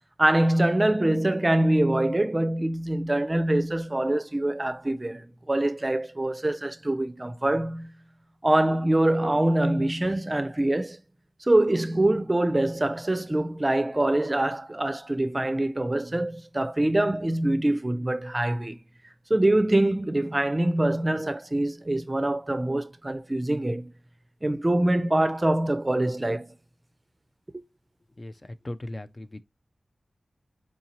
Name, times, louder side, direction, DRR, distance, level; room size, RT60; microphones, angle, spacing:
voice 1, 0.2-7.9 8.4-11.0 11.4-18.8 19.3-23.9 24.4-26.5 27.5-27.6, right 1 dB, 25° right, 0.5 m, -24 dB
voice 2, 28.2-29.4, left 1 dB, 35° left, 0.3 m, -38 dB
4.6 x 2.8 x 2.8 m
cardioid pair, 55°, 0 cm